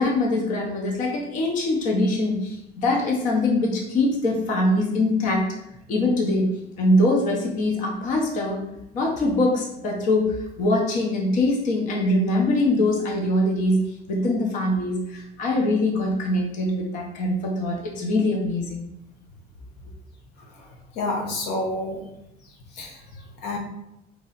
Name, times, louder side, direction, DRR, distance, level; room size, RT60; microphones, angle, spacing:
voice 1, 0.0-5.5 5.9-18.8, left 1 dB, 55° left, 0 dB, 0.9 m, -23 dB
voice 2, 20.9-22.0 22.7-23.6, left 2 dB, 90° left, 1 dB, 1.0 m, -29 dB
4.2 x 3.1 x 3.8 m, 0.83 s
cardioid pair, 175°, 16 cm